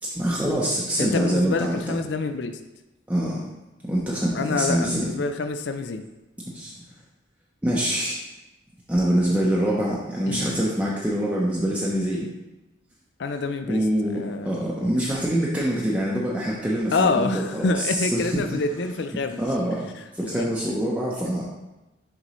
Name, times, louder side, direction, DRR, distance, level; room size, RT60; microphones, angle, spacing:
voice 1, 0.0-2.0 3.1-3.4 3.9-5.2 6.5-6.7 7.6-8.2 8.9-12.3 13.7-18.6 19.4-21.4, equal, 5° right, -6 dB, 0.7 m, -25 dB
voice 2, 1.0-2.6 4.3-6.1 10.3-10.4 13.2-13.8 14.1-14.5 16.9-19.4 20.3-20.5, left 3 dB, 60° left, 8 dB, 0.4 m, -26 dB
6.6 x 5.2 x 3.1 m, 1.0 s
head